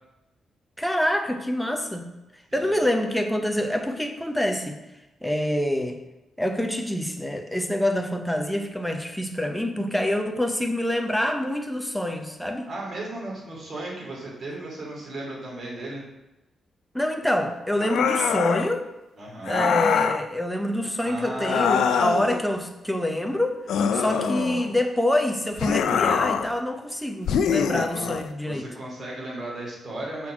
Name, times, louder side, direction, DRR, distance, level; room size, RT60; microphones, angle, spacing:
voice 1, 0.8-2.1 2.5-4.8 5.2-6.0 6.4-12.7 16.9-18.9 19.5-28.7, left 1 dB, ahead, 5 dB, 0.7 m, -26 dB
voice 2, 12.7-16.0 19.2-19.8 21.0-22.2 23.8-24.3 28.4-30.3, right 1 dB, 45° right, -3 dB, 2.6 m, -35 dB
sound 1, 17.8-18.7 19.5-20.2 21.4-22.4 23.7-24.8 25.6-26.5 27.3-28.3, left 7 dB, 90° left, 0.4 m, -24 dB
6.2 x 4.1 x 5.9 m, 0.99 s
cardioid pair, 130°, 0 cm